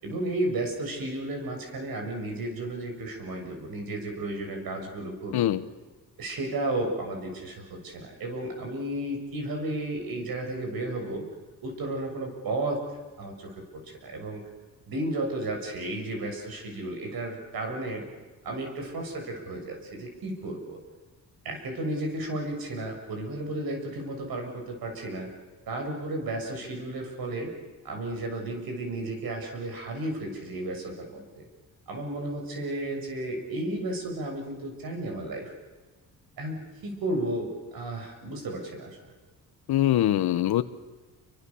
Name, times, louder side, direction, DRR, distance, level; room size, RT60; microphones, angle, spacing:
voice 1, 0.0-5.6 6.2-11.2 11.6-12.8 13.2-14.4 14.9-18.0 18.4-20.8 21.4-25.3 25.7-27.5 27.8-31.5 31.9-35.5 36.4-39.0, right 1 dB, 70° right, 3 dB, 7.1 m, -33 dB
voice 2, 39.7-40.6, left 13 dB, 80° left, 11 dB, 1.1 m, -23 dB
28.0 x 24.0 x 7.1 m, 1.3 s
cardioid pair, 110°, 37 cm